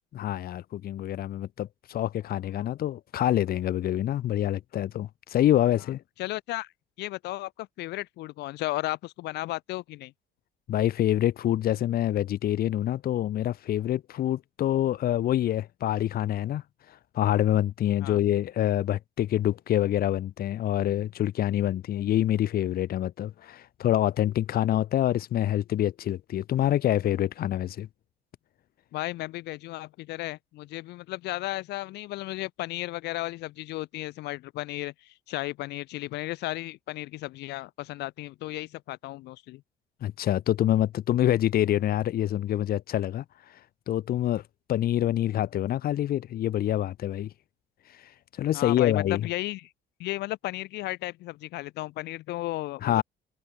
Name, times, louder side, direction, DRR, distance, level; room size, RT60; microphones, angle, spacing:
voice 1, 0.1-6.0 10.7-27.9 40.0-43.6 43.9-44.4 44.7-47.3 47.9-49.3 52.8-53.0, left 12 dB, 60° left, 2.9 m, -26 dB
voice 2, 6.2-6.7 7.0-10.1 18.0-18.2 28.9-39.6 48.5-49.7 50.0-53.0, left 18 dB, 80° left, 2.0 m, -34 dB
cardioid pair, 110°, 17 cm